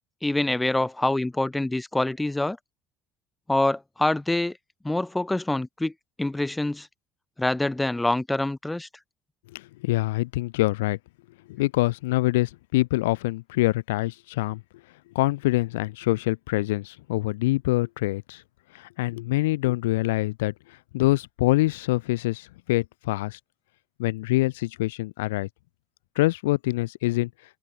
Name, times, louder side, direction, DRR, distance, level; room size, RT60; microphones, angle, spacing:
voice 1, 0.2-2.6 3.5-4.6 4.8-5.9 6.2-6.9 7.4-8.9, left 2 dB, 10° left, 1.3 m, -25 dB
voice 2, 9.5-11.0 11.5-14.6 15.1-18.4 18.7-23.4 24.0-25.5 26.2-27.3, left 19 dB, 80° left, 0.3 m, -25 dB
open air
hypercardioid pair, 70°, 0 cm